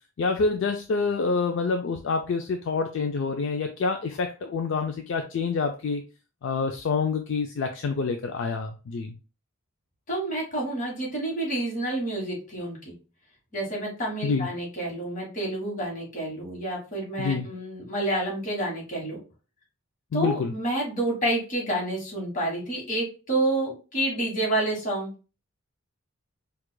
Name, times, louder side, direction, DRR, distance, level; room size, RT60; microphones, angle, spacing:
voice 1, 0.2-6.0 6.4-9.2 14.2-14.5 17.2-17.5 20.1-20.5, left 4 dB, 60° left, 4 dB, 0.3 m, -27 dB
voice 2, 10.1-12.9 13.5-19.2 20.1-25.1, right 1 dB, 40° left, -2 dB, 1.4 m, -29 dB
4.6 x 2.3 x 2.2 m, 0.34 s
head